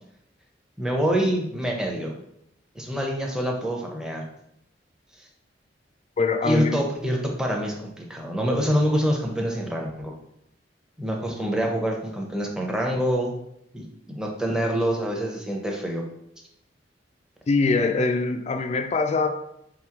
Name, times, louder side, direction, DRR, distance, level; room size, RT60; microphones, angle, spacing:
voice 1, 0.8-2.1 2.7-4.2 6.4-10.1 11.0-13.3 13.7-16.0, equal, 5° right, 0 dB, 0.6 m, -26 dB
voice 2, 6.2-6.8 17.5-19.3, left 3 dB, 35° left, 8 dB, 0.3 m, -23 dB
3.8 x 3.0 x 3.6 m, 0.79 s
head